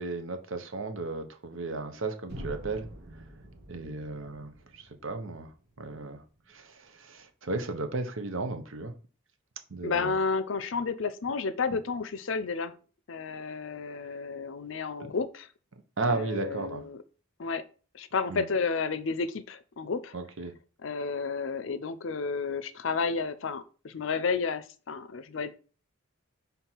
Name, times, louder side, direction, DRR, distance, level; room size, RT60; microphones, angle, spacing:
voice 1, 0.0-2.9 3.7-5.5 5.8-8.9 9.7-10.1 15.0-15.1 16.0-16.8 18.3-18.5 20.1-20.5, right 3 dB, 70° right, 7 dB, 0.9 m, -34 dB
sound 1, 2.3-6.3, right 1 dB, 55° right, 1.8 m, -46 dB
voice 2, 9.8-12.7 13.1-15.5 16.1-17.0 17.4-17.6 17.9-20.1 20.8-25.6, left 4 dB, 65° left, 14 dB, 0.5 m, -31 dB
5.7 x 3.7 x 4.4 m, 0.37 s
head